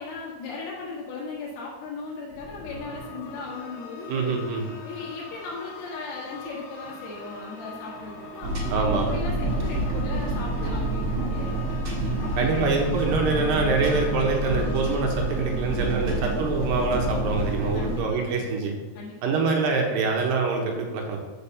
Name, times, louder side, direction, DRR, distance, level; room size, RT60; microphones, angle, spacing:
voice 1, 0.0-4.6 4.8-11.6 12.2-12.7 16.2-16.4 17.7-18.5 18.9-19.5, left 3 dB, 80° left, -6 dB, 3.3 m, -37 dB
sound 1, 2.3-16.7, left 3 dB, 65° left, 1.9 m, -42 dB
voice 2, 4.1-4.6 8.7-9.1 12.4-18.7 19.2-21.2, right 4 dB, 75° right, 1 dB, 2.5 m, -25 dB
sound 2, 8.4-18.0, right 2 dB, 35° right, 1.5 m, -28 dB
7.0 x 5.2 x 6.7 m, 1.2 s
omnidirectional pair, 4.4 m